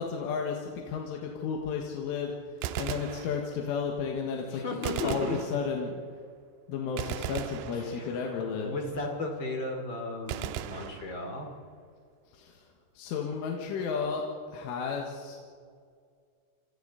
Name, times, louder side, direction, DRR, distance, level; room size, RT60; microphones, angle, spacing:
voice 1, 0.0-2.4 2.8-4.6 5.0-5.9 6.7-8.7 12.3-12.7 13.0-15.4, left 6 dB, 80° left, 0 dB, 4.1 m, -33 dB
Gunshot gunfire, 2.5-3.8 4.8-6.1 7.0-8.4 10.3-11.6, right 11 dB, 90° right, 3.4 m, -38 dB
voice 2, 4.5-5.4 7.7-8.2 8.6-11.5, left 2 dB, 30° left, 2 dB, 2.3 m, -35 dB
29.0 x 27.0 x 4.2 m, 2.1 s
omnidirectional pair, 5.7 m